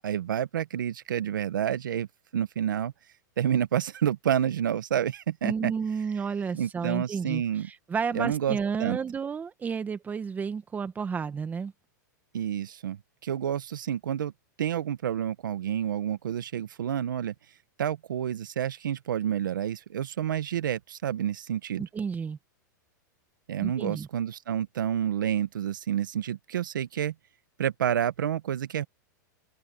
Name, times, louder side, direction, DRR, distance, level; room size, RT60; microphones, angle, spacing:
voice 1, 0.0-2.1 2.3-2.9 3.4-5.7 6.5-7.7 8.1-9.0 12.3-14.3 14.6-17.3 17.8-21.8 23.5-27.1 27.6-28.8, right 10 dB, 90° right, 1.2 m, -29 dB
voice 2, 5.4-11.7 21.8-22.4 23.6-24.1, right 6 dB, 15° right, 1.7 m, -31 dB
open air
hypercardioid pair, 135°, 10 cm